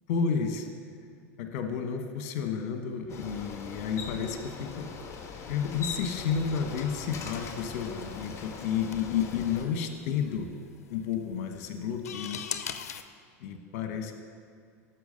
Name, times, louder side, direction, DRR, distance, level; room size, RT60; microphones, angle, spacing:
voice 1, 0.1-0.7 1.4-4.9 5.5-10.5 10.9-12.4 13.4-14.1, left 7 dB, 65° left, 6 dB, 1.3 m, -31 dB
Bicycle, 3.1-9.6, left 5 dB, 35° left, 1.5 m, -41 dB
sound 1, 7.2-13.0, left 8 dB, 80° left, 0.6 m, -43 dB
13.0 x 5.9 x 6.7 m, 2.2 s
hypercardioid pair, 95°, 8 cm